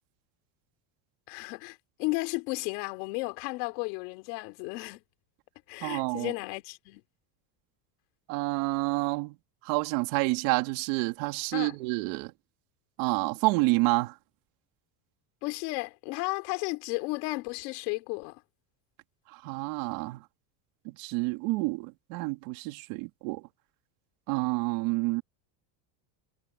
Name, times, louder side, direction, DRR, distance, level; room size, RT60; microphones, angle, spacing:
voice 1, 1.3-5.0 5.7-7.0 11.5-11.8 15.4-18.4, left 26 dB, 80° left, 3.4 m, -34 dB
voice 2, 5.8-6.3 8.3-9.4 9.6-12.3 13.0-14.1 19.4-20.2 20.8-23.4 24.3-25.2, right 24 dB, 75° right, 2.9 m, -29 dB
cardioid pair, 160°, 49 cm